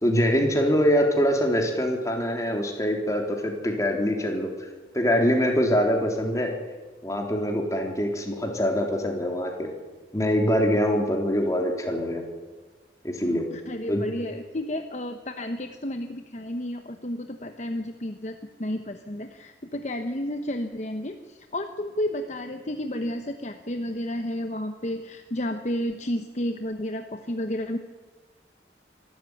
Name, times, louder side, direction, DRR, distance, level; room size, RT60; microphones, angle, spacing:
voice 1, 0.0-4.5 4.9-6.5 7.0-9.7 10.1-12.2 13.0-13.4 13.9-14.1, equal, 20° left, 2 dB, 3.6 m, -24 dB
voice 2, 13.5-27.8, left 1 dB, 40° left, 6 dB, 1.0 m, -31 dB
24.5 x 13.0 x 9.6 m, 1.3 s
head